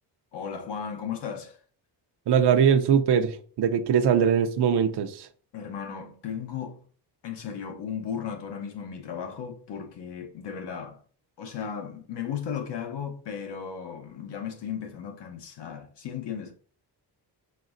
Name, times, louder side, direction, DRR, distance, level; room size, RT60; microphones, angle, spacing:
voice 1, 0.3-1.6 5.5-6.8 7.2-11.0 11.4-16.5, left 7 dB, 85° left, 1.0 m, -35 dB
voice 2, 2.3-5.3, right 7 dB, 75° right, 0.6 m, -22 dB
5.3 x 3.6 x 2.6 m
wide cardioid pair, 155°, 41 cm